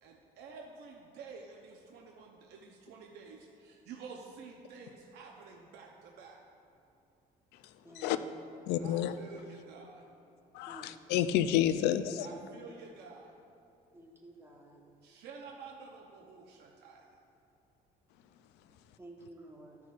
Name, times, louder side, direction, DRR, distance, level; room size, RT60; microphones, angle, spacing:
voice 1, 0.0-6.4 8.8-10.0 12.2-13.3 15.0-17.0, right 5 dB, 80° right, 0 dB, 0.7 m, -50 dB
voice 2, 7.8-8.6 10.7-10.9 13.9-14.8 19.0-19.8, right 2 dB, 15° right, -1 dB, 1.2 m, -51 dB
voice 3, 8.7-9.1 10.5-12.3, left 11 dB, 90° left, 11 dB, 0.4 m, -29 dB
13.0 x 5.9 x 2.5 m, 2.6 s
cardioid pair, 110°, 17 cm